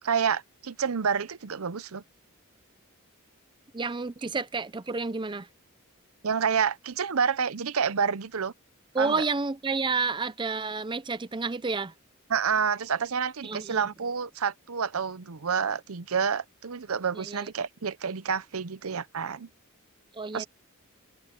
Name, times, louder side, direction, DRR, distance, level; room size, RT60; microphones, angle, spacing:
voice 1, 0.0-2.0 6.2-8.5 9.0-9.2 12.3-19.5 20.3-20.5, right 6 dB, 70° right, 0.7 m, -28 dB
voice 2, 3.7-5.5 8.9-11.9 13.4-13.9 17.1-17.5 20.1-20.4, right 4 dB, 20° right, 0.6 m, -30 dB
head